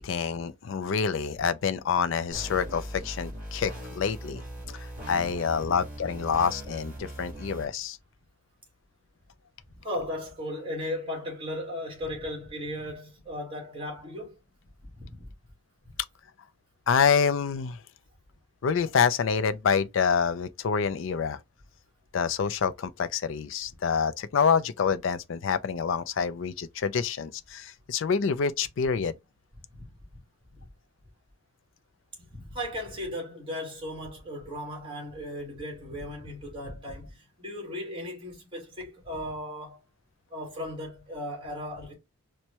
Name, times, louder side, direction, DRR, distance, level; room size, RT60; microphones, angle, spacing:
voice 1, 0.0-4.4 4.8-8.0 16.9-17.8 18.6-21.4 22.1-29.1, left 6 dB, 65° left, 0.4 m, -27 dB
sound 1, 2.3-7.6, equal, 10° right, 1.8 m, -40 dB
voice 2, 9.8-14.3 14.8-15.3 30.5-30.6 32.3-39.8 40.3-41.9, left 1 dB, 25° right, 1.7 m, -36 dB
4.4 x 2.2 x 2.9 m
head